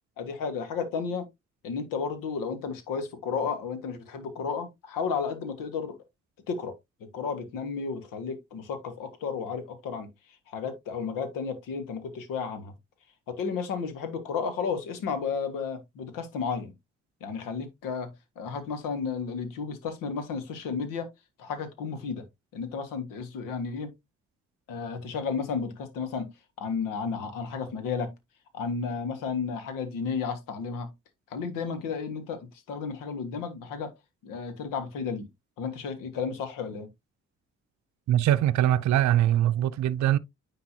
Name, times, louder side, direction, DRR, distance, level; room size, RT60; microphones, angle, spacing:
voice 1, 0.2-1.3 1.6-6.0 6.5-6.7 7.0-10.1 10.5-12.7 13.3-16.7 17.2-21.1 21.4-22.2 22.5-23.9 24.7-28.1 28.5-30.9 31.3-33.9 34.2-35.3 35.6-36.9, left 5 dB, 75° left, 1.7 m, -33 dB
voice 2, 38.1-40.2, right 12 dB, 60° right, 0.6 m, -22 dB
9.6 x 3.9 x 2.8 m
hypercardioid pair, 50°, 33 cm